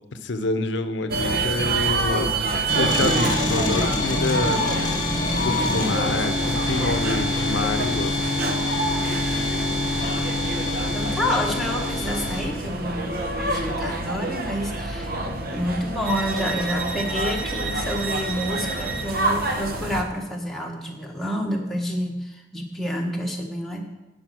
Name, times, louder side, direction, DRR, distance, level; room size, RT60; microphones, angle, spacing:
voice 1, 0.1-2.3 2.7-4.6 5.4-8.2, left 2 dB, 80° left, 9 dB, 0.7 m, -27 dB
sound 1, 1.1-20.0, right 2 dB, 55° right, 1.0 m, -27 dB
sound 2, 2.7-12.4, left 2 dB, 25° left, 1.4 m, -26 dB
voice 2, 9.8-10.2 10.9-15.1 15.5-23.8, equal, ahead, -1 dB, 1.3 m, -29 dB
10.5 x 5.2 x 7.6 m, 1.0 s
head